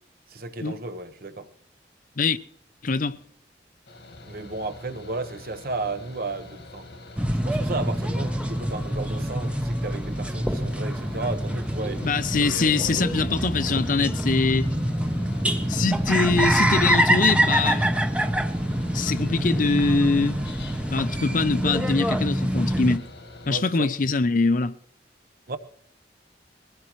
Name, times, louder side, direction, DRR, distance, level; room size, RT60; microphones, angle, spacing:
voice 1, 0.3-1.5 4.3-6.9 7.4-13.2 23.4-23.9 25.5-25.6, right 3 dB, 55° right, 1.0 m, -34 dB
voice 2, 2.8-3.2 12.0-14.7 15.7-17.9 18.9-20.4 20.9-23.1 23.5-24.8, left 4 dB, 45° left, 0.6 m, -23 dB
Mechanical fan, 3.9-23.5, left 2 dB, 70° left, 1.7 m, -45 dB
sound 1, 7.2-23.0, equal, 5° right, 0.7 m, -25 dB
21.5 x 15.5 x 3.1 m
head